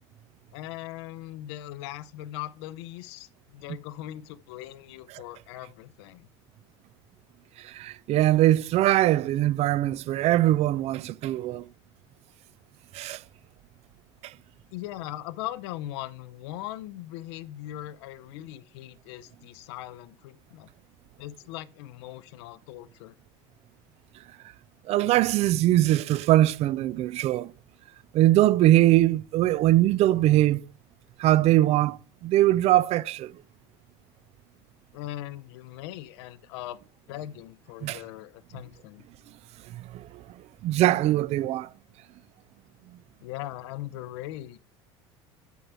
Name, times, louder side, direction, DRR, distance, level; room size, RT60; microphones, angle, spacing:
voice 1, 0.5-6.3 14.7-20.7 21.2-23.2 34.9-36.8 37.1-39.0 43.2-44.6, left 14 dB, 75° left, 0.6 m, -39 dB
voice 2, 7.6-11.6 12.9-13.2 24.9-27.5 28.1-30.6 31.2-33.3 37.8-38.0 39.7-40.2 40.6-41.7, right 14 dB, 50° right, 0.4 m, -22 dB
8.1 x 4.7 x 4.3 m
hypercardioid pair, 80°, 14 cm